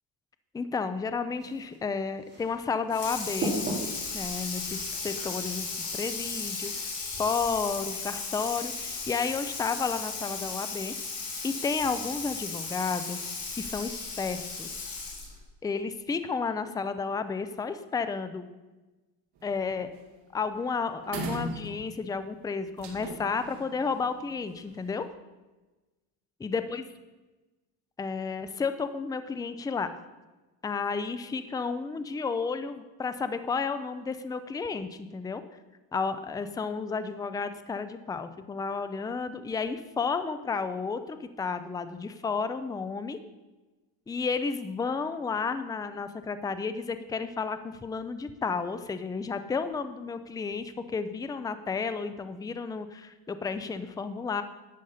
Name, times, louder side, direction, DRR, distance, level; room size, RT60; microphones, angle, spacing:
voice 1, 0.5-3.6 4.1-5.7 5.9-6.9 7.2-10.9 11.4-13.2 13.5-14.7 15.6-18.5 19.4-19.9 20.3-25.1 26.4-26.8 28.0-29.9 30.6-35.4 35.9-43.2 44.1-54.4, left 5 dB, 10° left, 11 dB, 0.4 m, -32 dB
sound 1, 1.4-6.5, right 1 dB, 25° right, 2.6 m, -38 dB
Water tap faucet / Sink (filling or washing), 2.9-15.4, left 4 dB, 50° left, 3.0 m, -36 dB
sound 2, 19.4-19.6 19.9-20.2 20.5-20.6 21.0-22.2 22.8-24.8, right 1 dB, 55° right, 2.2 m, -38 dB
11.5 x 8.0 x 5.5 m, 1.2 s
cardioid pair, 150°, 45 cm